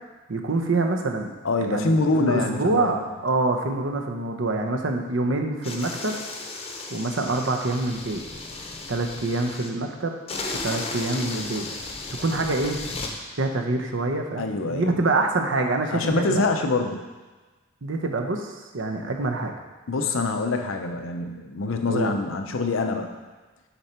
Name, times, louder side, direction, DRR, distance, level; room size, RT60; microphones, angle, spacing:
voice 1, 0.3-1.3 1.6-3.0 3.2-6.2 6.9-8.2 8.9-10.1 10.6-11.6 12.2-12.8 13.4-16.5 17.8-19.5 21.9-22.1, right 2 dB, 75° right, 3 dB, 0.8 m, -26 dB
voice 2, 1.4-3.0 14.4-15.2 15.9-17.0 19.9-23.1, left 3 dB, 90° left, 5 dB, 0.7 m, -25 dB
sound 1, 5.6-9.7 10.3-13.1, left 3 dB, 30° left, 0.7 m, -35 dB
7.0 x 5.3 x 4.4 m, 1.3 s
head